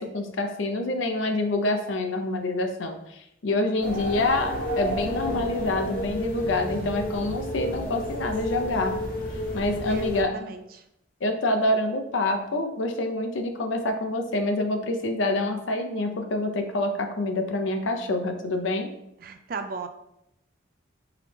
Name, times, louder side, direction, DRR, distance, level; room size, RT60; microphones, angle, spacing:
voice 1, 0.0-9.0 9.5-10.4 11.2-18.9, left 2 dB, 85° left, 6 dB, 0.6 m, -27 dB
sound 1, 3.8-10.2, equal, 45° left, 0.9 m, -31 dB
voice 2, 9.9-10.8 19.2-19.9, right 4 dB, 50° right, 7 dB, 0.4 m, -36 dB
4.9 x 3.3 x 3.0 m, 0.81 s
head